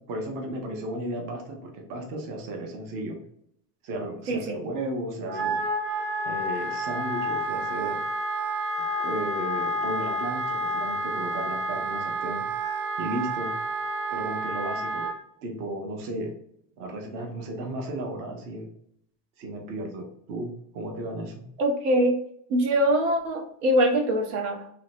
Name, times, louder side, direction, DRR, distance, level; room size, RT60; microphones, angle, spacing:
voice 1, 0.1-3.2 3.8-5.6 6.2-8.0 9.0-12.4 13.0-13.5 14.1-15.1 15.4-16.3 16.8-18.7 19.4-21.4, right 1 dB, 40° right, 2 dB, 0.8 m, -34 dB
voice 2, 4.3-4.6 21.6-22.2 22.5-24.6, equal, 75° right, 3 dB, 1.0 m, -23 dB
Wind instrument woodwind instrument, 5.2-15.1, right 1 dB, 25° right, 0.4 m, -29 dB
3.0 x 2.8 x 2.6 m, 0.70 s
supercardioid pair, 155°, 48 cm